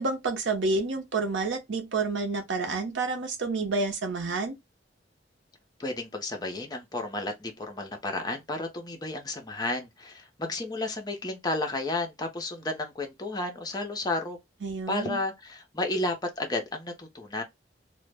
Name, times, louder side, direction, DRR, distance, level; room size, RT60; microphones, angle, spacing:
voice 1, 0.0-4.6 14.6-15.2, right 3 dB, 90° right, 0.7 m, -29 dB
voice 2, 5.8-14.4 14.9-17.4, left 2 dB, 20° left, 0.5 m, -32 dB
2.1 x 2.0 x 3.3 m
head